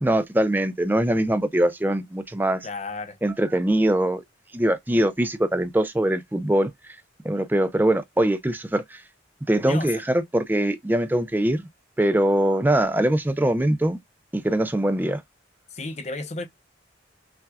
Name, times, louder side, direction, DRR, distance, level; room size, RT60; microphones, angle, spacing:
voice 1, 0.0-2.7 3.2-4.2 4.5-7.0 7.2-9.0 9.5-11.7 12.0-14.0 14.3-15.2, right 1 dB, 10° right, 0.4 m, -22 dB
voice 2, 2.6-3.2 9.6-9.9 15.7-16.5, left 3 dB, 35° left, 0.6 m, -32 dB
5.8 x 2.3 x 2.2 m
head